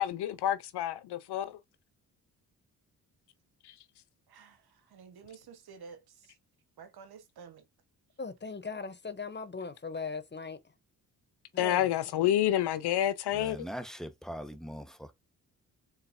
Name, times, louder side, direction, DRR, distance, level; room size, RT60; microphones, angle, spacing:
voice 1, 0.0-1.5 11.6-13.7, left 12 dB, 70° left, 0.7 m, -28 dB
voice 2, 4.9-6.0 6.8-7.6, right 6 dB, 65° right, 1.2 m, -50 dB
voice 3, 8.2-10.6 11.5-11.9, left 4 dB, 25° left, 0.9 m, -39 dB
voice 4, 13.3-15.1, equal, ahead, 1.2 m, -41 dB
4.0 x 3.9 x 2.6 m
supercardioid pair, 50°, 41 cm